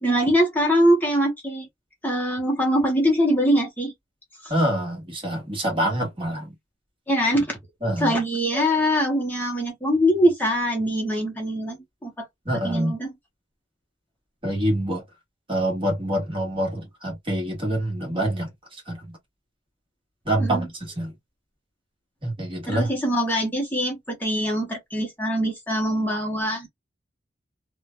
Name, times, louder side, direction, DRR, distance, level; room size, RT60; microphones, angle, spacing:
voice 1, 0.0-1.7 2.0-3.9 4.4-4.5 7.1-7.6 8.0-11.8 12.0-12.3 12.6-13.1 20.4-20.7 22.7-26.7, equal, 10° left, 0.8 m, -23 dB
voice 2, 4.5-6.5 7.8-8.1 12.4-13.0 14.4-15.0 15.5-18.5 18.9-19.1 20.2-21.1 22.2-22.9, right 1 dB, 30° right, 1.4 m, -26 dB
3.1 x 2.2 x 2.3 m
head